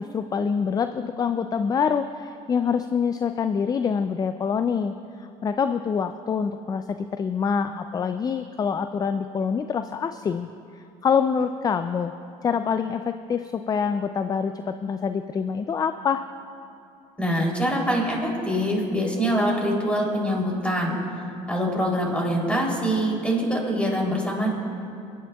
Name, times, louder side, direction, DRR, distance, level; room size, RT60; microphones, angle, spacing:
voice 1, 0.0-10.5 10.7-12.1 12.4-16.2, left 6 dB, 25° left, 9 dB, 0.3 m, -26 dB
voice 2, 17.2-21.0 21.5-24.5, equal, 10° left, -2 dB, 3.2 m, -24 dB
29.5 x 10.0 x 2.3 m, 2.7 s
supercardioid pair, 95°, 15 cm